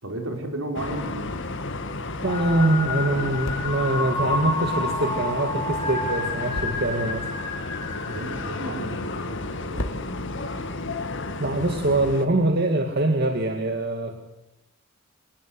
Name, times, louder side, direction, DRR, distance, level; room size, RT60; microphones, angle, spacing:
voice 1, 0.0-1.3 8.1-9.9, right 1 dB, 70° right, 4 dB, 5.3 m, -33 dB
sound 1, 0.7-12.3, left 2 dB, 60° left, 2.1 m, -33 dB
sound 2, 1.8-12.4, left 1 dB, 75° left, 2.5 m, -42 dB
sound 3, 2.2-9.5, left 3 dB, 20° left, 7.7 m, -30 dB
voice 2, 2.2-7.3 11.4-14.1, right 2 dB, 50° right, 5 dB, 2.2 m, -24 dB
25.0 x 20.0 x 8.2 m, 0.89 s
head